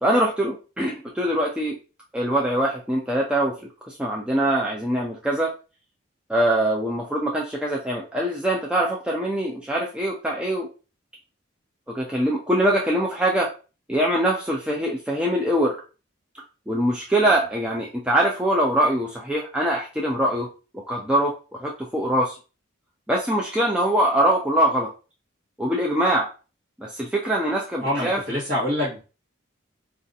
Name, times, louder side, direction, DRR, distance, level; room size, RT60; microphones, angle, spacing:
voice 1, 0.0-1.8 2.1-3.5 3.9-5.5 6.3-10.7 11.9-13.5 13.9-15.8 16.7-20.5 20.7-21.3 21.6-22.4 23.1-24.9 25.6-26.3 26.8-28.2, right 1 dB, 5° right, -2 dB, 0.4 m, -23 dB
voice 2, 27.8-29.0, left 1 dB, 50° right, -7 dB, 1.5 m, -26 dB
4.8 x 2.5 x 2.7 m, 0.33 s
head